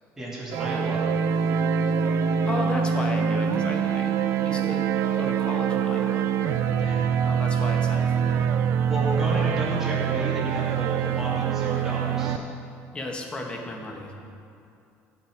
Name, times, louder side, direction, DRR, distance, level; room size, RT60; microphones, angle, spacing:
voice 1, 0.2-1.0 6.8-7.1 8.9-12.4, equal, 5° right, -6 dB, 2.5 m, -32 dB
sound 1, 0.5-12.4, right 7 dB, 60° right, 0.5 m, -25 dB
sound 2, 0.6-2.6 4.6-6.6, right 6 dB, 90° right, 2.5 m, -34 dB
voice 2, 2.5-4.8 5.2-6.3 7.2-8.5 12.9-14.1, left 1 dB, 20° left, 2 dB, 1.2 m, -34 dB
15.0 x 5.8 x 4.7 m, 2.6 s
cardioid pair, 145°, 5 cm